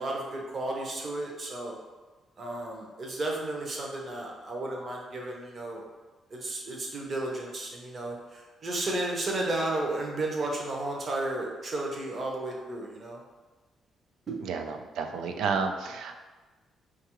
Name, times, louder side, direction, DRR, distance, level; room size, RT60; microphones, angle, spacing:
voice 1, 0.0-1.8 2.4-5.8 6.3-13.2 14.3-14.4, right 2 dB, 30° right, -1 dB, 0.6 m, -33 dB
voice 2, 14.4-16.2, right 5 dB, 75° right, 5 dB, 0.3 m, -31 dB
4.6 x 2.3 x 2.9 m, 1.3 s
cardioid pair, 155°, 0 cm